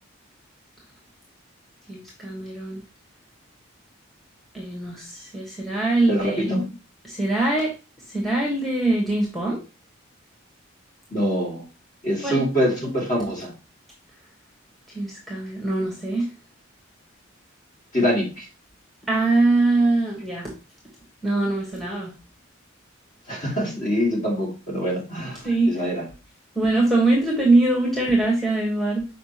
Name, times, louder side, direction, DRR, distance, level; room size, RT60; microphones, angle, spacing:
voice 1, 1.9-2.8 4.5-6.5 7.0-7.7 8.1-9.6 12.2-12.4 14.9-16.3 19.1-20.5 21.2-22.1 25.4-25.7 26.5-29.1, right 2 dB, ahead, -2 dB, 1.3 m, -22 dB
voice 2, 6.1-6.7 11.1-11.6 12.0-13.5 17.9-18.5 23.3-26.1, equal, 35° left, -3 dB, 2.7 m, -24 dB
6.7 x 4.9 x 2.9 m, 0.32 s
head